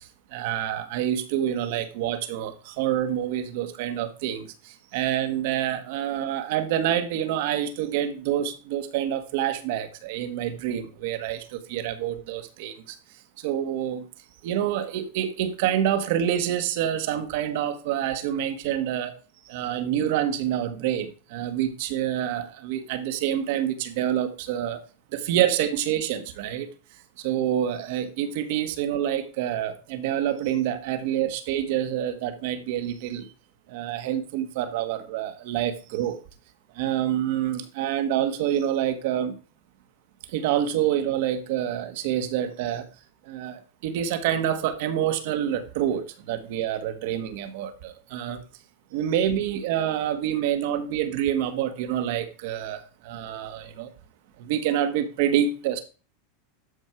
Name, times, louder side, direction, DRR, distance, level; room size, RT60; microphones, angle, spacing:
voice 1, 0.3-4.5 4.9-12.7 13.4-14.0 14.4-19.1 19.5-24.8 25.1-26.7 27.2-33.2 33.7-36.2 36.8-39.3 40.3-42.8 43.3-46.0 46.3-48.4 48.9-52.8 53.1-53.9 54.4-55.8, right 10 dB, 65° right, 9 dB, 1.7 m, -27 dB
13.0 x 5.4 x 4.7 m, 0.36 s
supercardioid pair, 135°, 0 cm